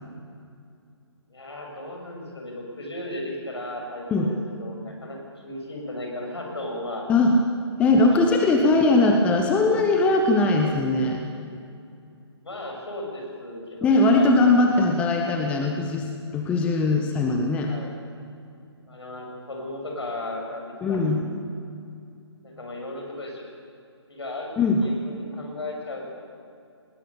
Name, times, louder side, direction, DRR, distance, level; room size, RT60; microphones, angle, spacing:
voice 1, 1.3-7.1 8.1-8.5 12.4-14.3 17.7-17.9 18.9-21.4 22.4-23.5 24.1-24.5 24.8-26.0, left 1 dB, 65° left, 0 dB, 7.1 m, -35 dB
voice 2, 7.8-11.2 13.8-17.7 20.8-21.2 24.6-24.8, left 2 dB, 10° left, 2 dB, 0.9 m, -20 dB
20.0 x 19.5 x 7.1 m, 2.4 s
figure-of-eight pair, 140°, 15 cm